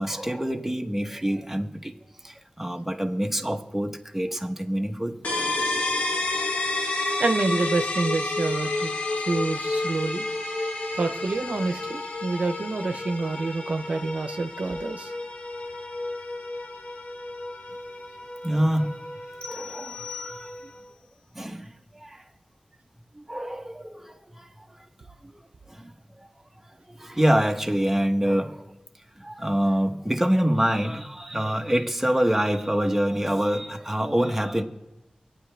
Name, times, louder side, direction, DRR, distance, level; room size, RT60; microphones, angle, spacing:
voice 1, 0.0-2.0 2.2-5.5 18.4-18.9 19.4-20.6 21.3-22.2 23.1-25.4 25.7-26.3 26.6-28.7 29.1-34.6, equal, 10° right, 4 dB, 1.1 m, -26 dB
sound 1, 5.2-20.8, left 2 dB, 85° left, 1.3 m, -31 dB
voice 2, 7.2-8.9 9.2-10.3 10.9-15.1, right 3 dB, 75° right, 7 dB, 0.7 m, -27 dB
sound 2, 19.4-20.9, left 7 dB, 45° left, 1.3 m, -41 dB
24.0 x 9.0 x 3.4 m, 1.0 s
wide cardioid pair, 85°, 2 cm